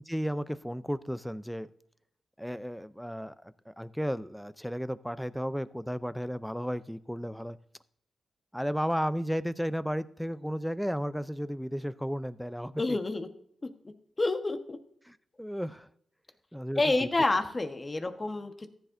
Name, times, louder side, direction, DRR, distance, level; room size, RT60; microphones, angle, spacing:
voice 1, 0.1-1.7 2.4-7.6 8.5-13.0 15.1-15.9 16.5-16.8, equal, ahead, 15 dB, 0.6 m, -34 dB
voice 2, 12.8-13.3 13.6-13.7 14.2-14.8 16.8-18.7, left 2 dB, 30° left, 7 dB, 1.3 m, -28 dB
14.5 x 10.0 x 2.7 m, 0.68 s
cardioid pair, 55°, 0 cm